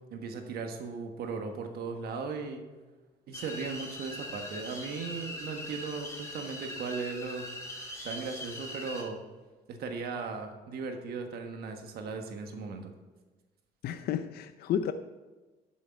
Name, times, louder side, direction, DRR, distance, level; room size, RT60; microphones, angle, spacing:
voice 1, 0.1-2.7 3.3-7.4 7.8-9.2 9.7-12.9, right 4 dB, 65° right, 4 dB, 1.3 m, -37 dB
sound 1, 3.3-9.0, left 1 dB, 15° left, 2.6 m, -41 dB
voice 2, 13.8-14.9, left 9 dB, 65° left, 10 dB, 0.6 m, -31 dB
11.5 x 6.5 x 5.3 m, 1.2 s
cardioid pair, 110°, 17 cm